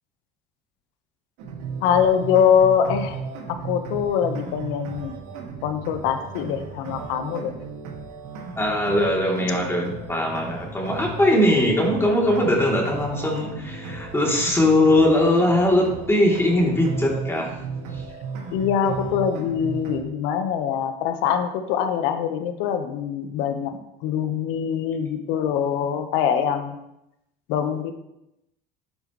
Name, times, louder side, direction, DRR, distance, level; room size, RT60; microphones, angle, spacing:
sound 1, 1.4-20.0, right 4 dB, 85° right, 2.3 m, -35 dB
voice 1, 1.8-3.2 3.5-5.1 5.6-7.5 18.5-23.7 24.0-26.8 27.5-27.9, left 8 dB, 80° left, 7 dB, 1.3 m, -23 dB
voice 2, 8.6-17.5 17.9-18.0, left 1 dB, 15° left, -3 dB, 3.3 m, -20 dB
11.0 x 9.5 x 3.2 m, 0.86 s
supercardioid pair, 115°, 20 cm